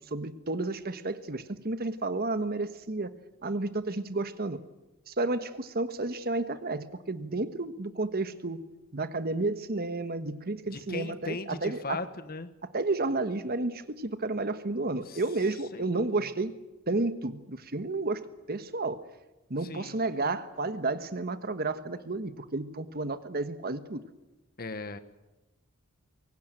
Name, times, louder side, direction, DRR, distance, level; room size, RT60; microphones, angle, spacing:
voice 1, 0.1-3.1 3.4-4.6 5.1-8.6 8.9-12.0 12.7-16.5 16.9-18.2 18.5-19.0 19.5-24.0, right 2 dB, 45° right, 11 dB, 1.4 m, -31 dB
voice 2, 10.7-12.5 15.1-15.2 15.7-16.3 19.6-20.0 24.6-25.0, left 3 dB, 45° left, 12 dB, 1.3 m, -38 dB
23.0 x 18.0 x 9.2 m, 1.0 s
head